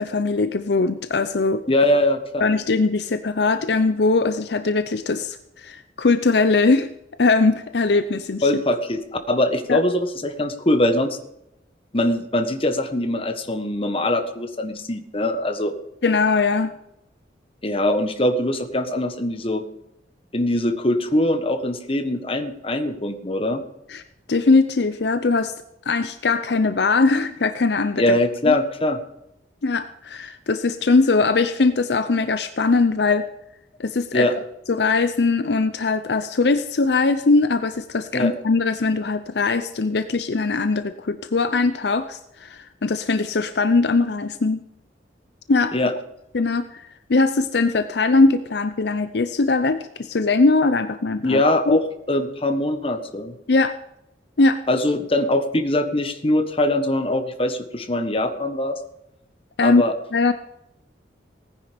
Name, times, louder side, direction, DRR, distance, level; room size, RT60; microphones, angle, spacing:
voice 1, 0.0-1.6 2.4-6.9 7.2-8.5 9.7-9.8 16.0-16.8 23.9-24.0 24.3-25.5 25.9-28.2 28.4-28.6 29.6-33.3 33.8-34.3 34.7-44.6 45.5-45.7 46.3-51.8 53.5-53.7 54.4-54.6 59.6-59.8 60.1-60.3, left 3 dB, 65° left, 11 dB, 0.6 m, -20 dB
voice 2, 1.7-2.5 8.4-9.0 9.3-11.2 11.9-15.7 17.6-19.6 20.3-23.6 28.0-29.0 34.1-34.3 38.1-38.3 45.7-45.9 51.2-53.3 54.7-58.8 59.6-59.9, left 1 dB, 30° left, 8 dB, 1.3 m, -22 dB
18.0 x 10.0 x 5.2 m, 0.85 s
head